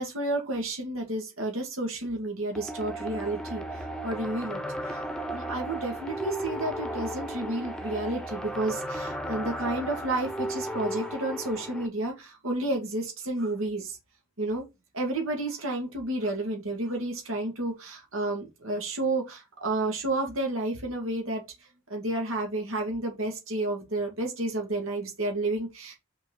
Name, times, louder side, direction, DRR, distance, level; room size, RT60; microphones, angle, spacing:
voice 1, 0.0-14.0 14.4-14.6 14.9-21.4 21.9-25.9, right 2 dB, 90° right, 2.1 m, -31 dB
sound 1, 2.5-11.9, right 1 dB, 5° left, 0.8 m, -35 dB
5.9 x 4.5 x 3.9 m
head